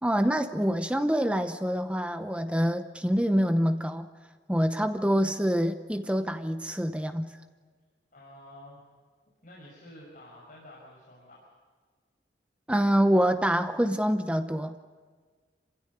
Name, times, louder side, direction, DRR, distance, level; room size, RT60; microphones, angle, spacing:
voice 1, 0.0-4.1 4.5-7.3 12.7-14.7, equal, 5° right, 8 dB, 0.8 m, -26 dB
voice 2, 8.1-8.9 9.4-11.5, left 1 dB, 45° left, -5 dB, 6.0 m, -50 dB
27.5 x 16.5 x 9.7 m, 1.5 s
head